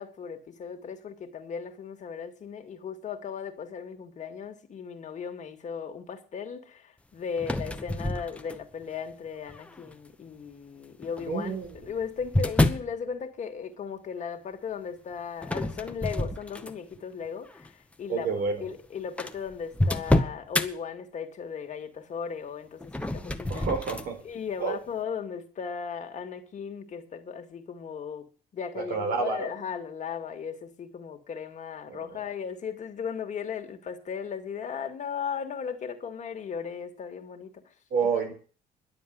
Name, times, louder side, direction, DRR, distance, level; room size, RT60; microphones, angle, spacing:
voice 1, 0.0-18.3 18.6-23.7 24.2-37.6 38.0-38.3, left 6 dB, 45° left, 2.2 m, -37 dB
sound 1, 7.4-8.8 9.5-9.9 11.0-13.0 15.4-17.0 17.5-17.7 18.5-18.6 18.7-18.8 19.2-20.7 22.8-24.1, left 1 dB, 5° left, 1.1 m, -28 dB
voice 2, 11.3-11.9 18.1-18.7 23.5-24.2 24.6-24.8 28.7-29.5 31.9-32.1 37.9-38.3, right 5 dB, 65° right, 4.2 m, -29 dB
11.5 x 7.8 x 9.5 m
cardioid pair, 110°, 17 cm